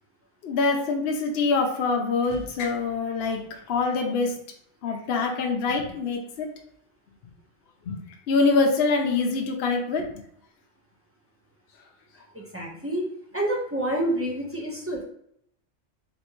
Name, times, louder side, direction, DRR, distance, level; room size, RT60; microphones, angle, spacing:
voice 1, 0.4-4.3 4.8-6.5 7.9-8.0 8.3-10.1, left 4 dB, 60° left, 2 dB, 0.8 m, -24 dB
voice 2, 12.3-15.0, right 1 dB, 10° right, -2 dB, 0.8 m, -28 dB
4.2 x 3.1 x 3.0 m, 0.70 s
omnidirectional pair, 1.3 m